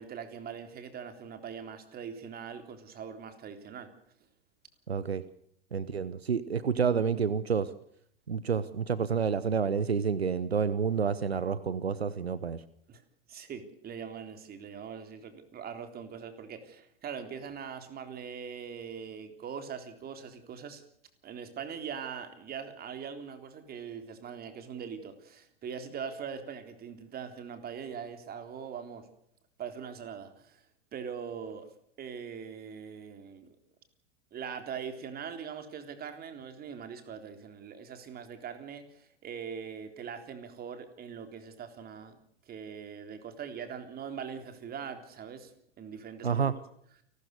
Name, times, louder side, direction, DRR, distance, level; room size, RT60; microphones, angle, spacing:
voice 1, 0.0-3.9 12.9-13.0 13.3-20.8 21.2-29.1 29.6-30.6 30.9-31.7 32.0-33.5 34.3-42.2 42.5-45.5 45.8-46.3, right 7 dB, 30° right, 8 dB, 3.7 m, -42 dB
voice 2, 4.9-5.2 5.7-7.7 8.3-12.6 46.2-46.5, right 6 dB, 90° right, 16 dB, 1.0 m, -29 dB
29.5 x 13.5 x 6.7 m, 0.68 s
figure-of-eight pair, 90°, 30 cm